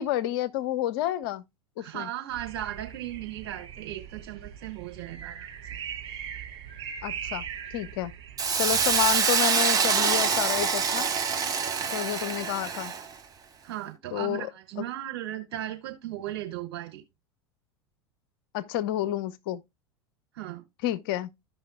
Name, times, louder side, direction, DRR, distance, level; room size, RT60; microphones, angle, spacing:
voice 1, 0.0-1.4 1.8-2.1 7.0-7.4 7.7-8.1 8.6-11.1 11.9-12.9 14.1-14.5 14.8-14.9 18.5-19.6 20.8-21.3, left 13 dB, 60° left, 0.6 m, -29 dB
voice 2, 1.8-5.8 13.6-17.0 20.3-20.6, right 13 dB, 65° right, 2.6 m, -37 dB
sound 1, 2.3-8.5, right 8 dB, 45° right, 4.0 m, -40 dB
Hiss, 8.4-13.1, right 6 dB, 25° right, 1.2 m, -25 dB
14.5 x 5.5 x 2.2 m
figure-of-eight pair, 80°, 13 cm